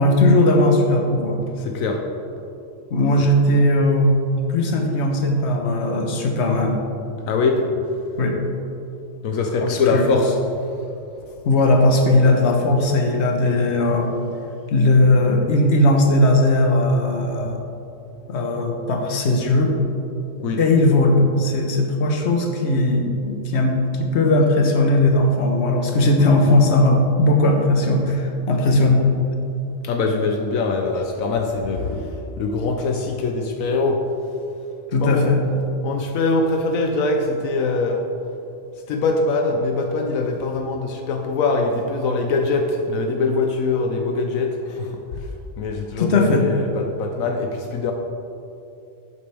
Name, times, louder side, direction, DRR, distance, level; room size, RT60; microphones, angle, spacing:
voice 1, 0.0-1.4 2.9-4.2 4.5-6.8 8.2-8.4 9.6-10.1 11.4-14.1 14.7-17.6 18.3-19.7 20.6-29.0 34.9-35.4 46.0-46.5, left 1 dB, 55° left, 2 dB, 1.3 m, -18 dB
voice 2, 1.6-2.1 7.3-7.7 9.2-10.4 20.4-20.6 29.8-34.1 35.0-35.3 35.8-38.1 38.9-45.3 45.6-47.9, left 3 dB, 80° left, 3 dB, 1.1 m, -23 dB
11.0 x 8.5 x 3.4 m, 2.8 s
omnidirectional pair, 1.4 m